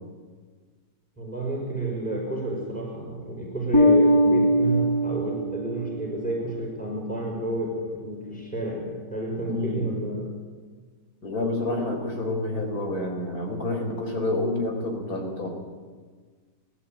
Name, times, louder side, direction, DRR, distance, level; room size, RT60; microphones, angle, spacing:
voice 1, 1.2-10.3, right 1 dB, 5° left, -1 dB, 5.2 m, -30 dB
Bass guitar, 3.7-6.4, equal, 25° left, 0.7 m, -21 dB
voice 2, 9.4-10.0 11.2-15.5, left 2 dB, 55° left, 3 dB, 4.5 m, -28 dB
20.5 x 14.5 x 9.0 m, 1.5 s
omnidirectional pair, 1.9 m